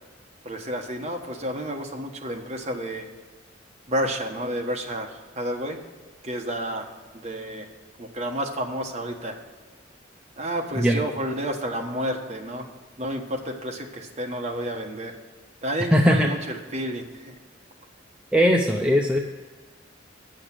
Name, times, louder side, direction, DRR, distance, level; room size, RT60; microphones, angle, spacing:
voice 1, 0.4-3.0 3.9-5.8 6.2-7.7 8.0-9.4 10.4-12.7 13.0-15.1 15.6-17.4, equal, 35° right, 2 dB, 1.2 m, -30 dB
voice 2, 15.9-16.3 18.3-19.2, equal, 5° right, 1 dB, 0.5 m, -19 dB
9.1 x 6.5 x 7.4 m, 1.4 s
head